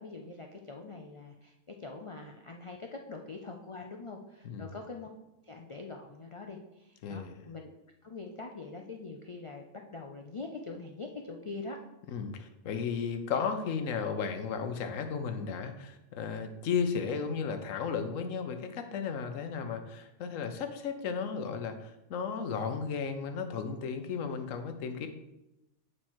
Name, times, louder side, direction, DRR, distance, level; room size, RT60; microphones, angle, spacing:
voice 1, 0.0-5.1 5.4-7.7 8.0-9.6 9.9-11.8, left 3 dB, 50° left, 2 dB, 0.3 m, -43 dB
voice 2, 7.0-7.4 12.1-25.1, left 6 dB, 80° left, 7 dB, 1.2 m, -34 dB
8.0 x 4.4 x 4.4 m, 0.93 s
omnidirectional pair, 1.3 m